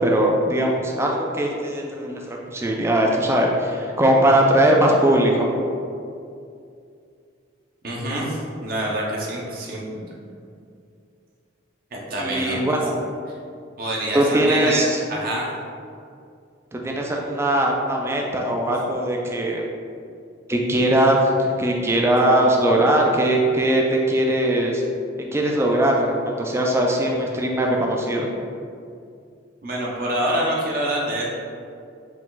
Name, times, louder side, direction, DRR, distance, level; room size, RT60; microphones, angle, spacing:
voice 1, 0.0-5.7 12.2-12.9 14.1-15.0 16.7-19.6 20.5-24.8 25.3-28.3, right 1 dB, 15° right, -1 dB, 0.3 m, -20 dB
voice 2, 7.8-10.1 11.9-12.8 13.8-15.5 29.6-31.3, right 1 dB, 50° right, -4 dB, 0.7 m, -26 dB
4.6 x 2.3 x 3.8 m, 2.4 s
head